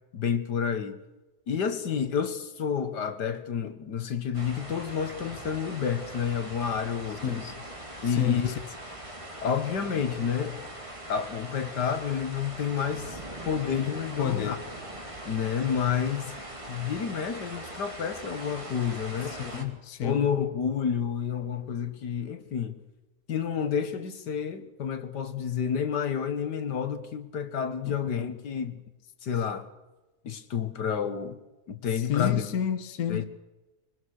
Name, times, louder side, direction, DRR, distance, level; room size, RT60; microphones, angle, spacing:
voice 1, 0.1-1.0 1.5-7.4 8.0-8.5 9.4-10.7 11.1-14.6 15.3-16.3 16.7-19.4 20.0-22.8 23.3-28.8 29.2-29.7 30.2-31.4 31.7-32.4 33.1-33.2, left 7 dB, 85° left, 2.0 m, -30 dB
sound 1, 4.3-19.6, right 1 dB, 20° right, 2.6 m, -41 dB
voice 2, 7.2-7.6 8.0-8.5 14.2-14.7 19.3-20.3 27.9-28.0 31.9-33.2, left 9 dB, 65° left, 1.6 m, -30 dB
24.0 x 19.0 x 6.5 m
omnidirectional pair, 1.8 m